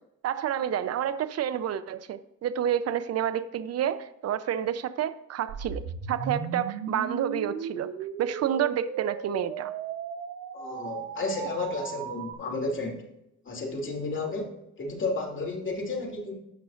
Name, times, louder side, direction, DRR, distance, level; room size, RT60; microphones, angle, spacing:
voice 1, 0.2-7.9 8.2-9.7, right 9 dB, 55° right, 13 dB, 0.7 m, -29 dB
sound 1, 5.5-12.3, right 7 dB, 85° right, 1.1 m, -36 dB
voice 2, 10.5-13.0 13.4-16.3, left 3 dB, 40° left, 1 dB, 3.0 m, -32 dB
16.0 x 6.1 x 2.6 m, 0.83 s
cardioid pair, 90°, 30 cm